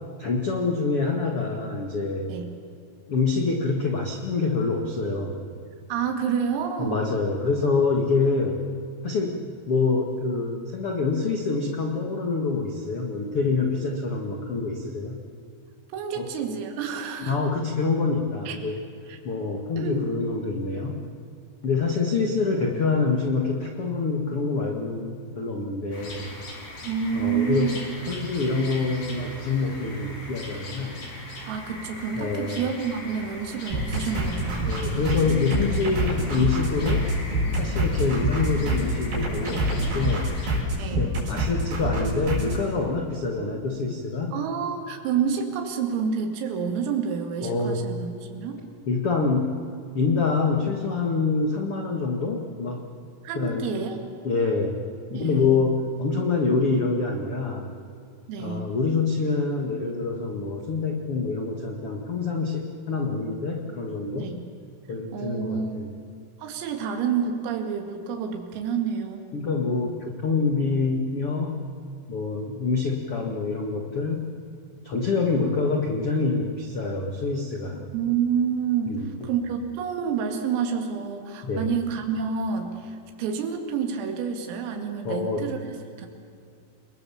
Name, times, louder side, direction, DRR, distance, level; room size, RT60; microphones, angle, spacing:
voice 1, 0.2-2.3 3.1-5.4 6.8-8.6 9.0-9.4 9.7-15.2 16.1-16.3 17.2-18.8 19.2-21.0 21.6-26.3 27.1-27.8 28.1-31.0 32.1-32.6 34.6-37.1 37.5-40.3 41.0-44.3 47.4-47.8 48.9-49.5 49.9-52.8 53.3-53.8 54.2-54.8 55.1-57.7 58.4-64.3 64.9-65.9 69.3-71.5 72.1-74.3 74.8-77.9 78.9-79.1 81.4-81.8 85.0-85.4, left 4 dB, 80° left, 1 dB, 1.2 m, -26 dB
voice 2, 5.9-7.0 15.9-17.4 18.5-18.6 19.1-19.2 19.8-20.0 26.8-27.8 31.5-34.7 40.8-41.1 44.3-48.6 53.2-54.0 55.1-55.6 58.3-58.6 64.1-64.4 65.1-65.8 66.4-69.3 77.9-78.9 79.2-85.6 86.0-86.1, right 7 dB, 80° right, 4 dB, 4.9 m, -28 dB
sound 1, 25.9-40.6, left 1 dB, 35° left, 4.8 m, -40 dB
sound 2, 33.7-42.6, right 1 dB, 45° right, 7.6 m, -26 dB
29.5 x 21.0 x 7.2 m, 2.4 s
omnidirectional pair, 6.0 m